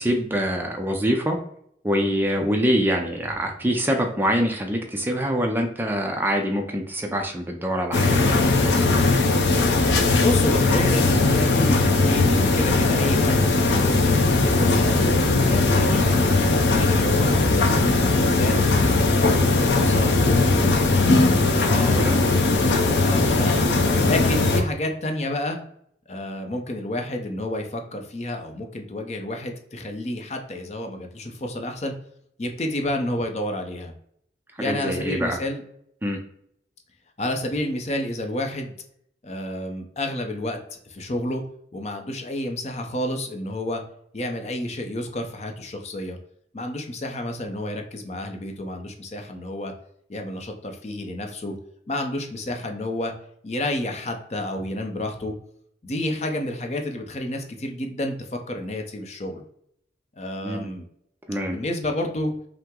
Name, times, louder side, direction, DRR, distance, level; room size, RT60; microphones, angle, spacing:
voice 1, 0.0-1.4 1.8-8.9 21.8-22.2 34.6-35.4 36.0-36.2 60.4-60.6 61.3-61.6, equal, 10° right, 2 dB, 0.4 m, -25 dB
sound 1, 7.9-24.6, left 3 dB, 80° left, 0.6 m, -19 dB
voice 2, 10.2-16.0 16.3-17.8 18.1-21.1 21.6-22.7 23.0-23.6 24.0-25.6 26.1-31.9 32.4-33.9 34.6-35.6 37.2-38.7 39.2-40.6 40.8-41.4 41.7-43.8 44.1-46.2 46.5-49.7 50.1-51.5 51.9-53.1 53.4-55.3 55.8-59.4 60.2-60.8 61.5-62.3, left 1 dB, 35° left, 4 dB, 0.6 m, -30 dB
5.5 x 2.0 x 3.6 m, 0.70 s
head